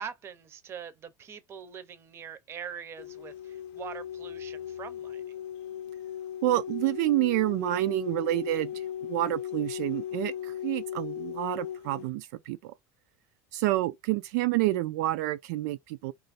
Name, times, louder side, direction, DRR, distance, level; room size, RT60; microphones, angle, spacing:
voice 1, 0.0-5.3, right 7 dB, 25° right, 0.6 m, -43 dB
sound 1, 3.0-12.1, left 10 dB, 65° left, 0.5 m, -37 dB
voice 2, 6.4-12.7 13.5-16.1, right 16 dB, 75° right, 0.3 m, -28 dB
3.0 x 2.5 x 4.1 m
supercardioid pair, 145°, 9 cm